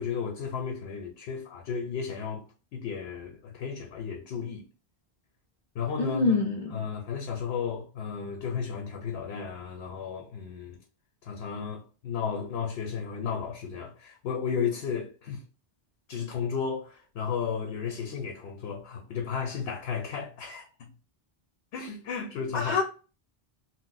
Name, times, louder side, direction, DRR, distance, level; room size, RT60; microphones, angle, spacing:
voice 1, 0.0-2.4 2.7-4.7 5.7-6.4 6.7-10.8 11.2-15.4 16.1-20.9 21.7-22.8, left 6 dB, 85° left, 0.8 m, -34 dB
voice 2, 6.0-6.8 22.5-22.8, left 4 dB, 55° left, 0.5 m, -26 dB
2.6 x 2.1 x 3.8 m
omnidirectional pair, 1.0 m